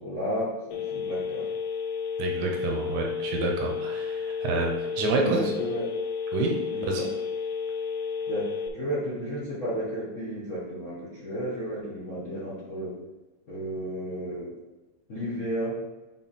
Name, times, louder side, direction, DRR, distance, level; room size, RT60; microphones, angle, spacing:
voice 1, 0.0-1.5 5.1-5.9 6.7-7.1 8.3-8.5 8.7-12.9 13.5-14.5 15.1-15.7, equal, 60° left, -8 dB, 0.8 m, -32 dB
Telephone, 0.7-8.7, left 6 dB, 85° left, 2.1 m, -32 dB
voice 2, 2.2-5.5 6.3-6.5 6.8-7.0, right 3 dB, 80° right, 1 dB, 2.1 m, -28 dB
5.7 x 4.5 x 4.0 m, 1.1 s
omnidirectional pair, 3.4 m